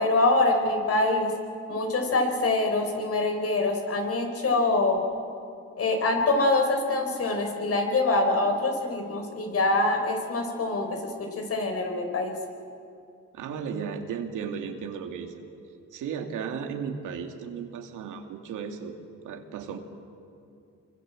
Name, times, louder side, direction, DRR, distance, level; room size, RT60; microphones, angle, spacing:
voice 1, 0.0-1.3 1.7-5.0 5.8-12.4, left 2 dB, 50° left, 4 dB, 4.9 m, -25 dB
voice 2, 13.3-15.3 15.9-18.9 19.2-19.8, right 6 dB, 80° right, 4 dB, 2.4 m, -35 dB
26.0 x 23.5 x 7.7 m, 2.5 s
cardioid pair, 90°, 30 cm